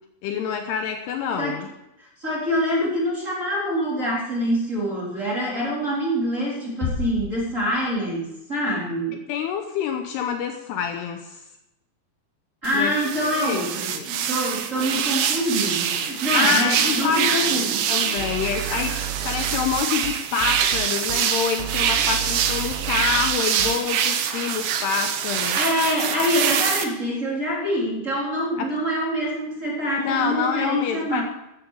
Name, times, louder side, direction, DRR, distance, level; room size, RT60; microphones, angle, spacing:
voice 1, 0.2-1.7 9.1-11.4 12.7-13.0 13.2-13.7 13.9-14.1 16.3-17.6 17.9-25.6 28.6-28.7 30.0-31.2, left 7 dB, 75° left, 5 dB, 2.7 m, -27 dB
voice 2, 2.0-9.2 12.6-17.8 25.5-31.2, equal, 20° right, -4 dB, 3.3 m, -25 dB
sound 1, 6.8-8.4, left 5 dB, 60° left, 2.3 m, -32 dB
sound 2, 12.6-26.8, right 8 dB, 70° right, 2.0 m, -25 dB
sound 3, 18.2-23.7, right 11 dB, 85° right, 3.0 m, -33 dB
14.0 x 13.0 x 4.7 m, 0.91 s
omnidirectional pair, 5.3 m